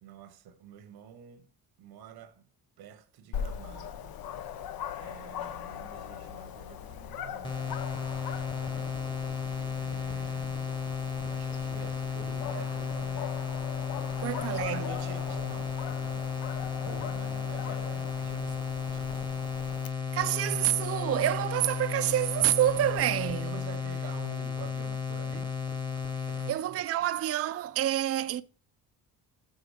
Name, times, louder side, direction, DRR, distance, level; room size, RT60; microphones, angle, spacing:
voice 1, 0.0-1.5 1.8-2.5 2.8-4.2 5.0-8.3 9.8-10.7 11.2-13.6 14.1-14.4 14.7-19.3 20.3-20.6 23.4-25.6 26.3-26.8, right 9 dB, 85° right, 1.1 m, -48 dB
Dog, 3.3-19.9, left 9 dB, 70° left, 0.8 m, -41 dB
sound 1, 7.4-26.6, left 6 dB, 10° left, 1.1 m, -34 dB
voice 2, 14.2-15.0 20.1-23.6 26.5-28.4, right 12 dB, 40° right, 0.4 m, -28 dB
6.9 x 3.8 x 4.9 m
cardioid pair, 95°, 37 cm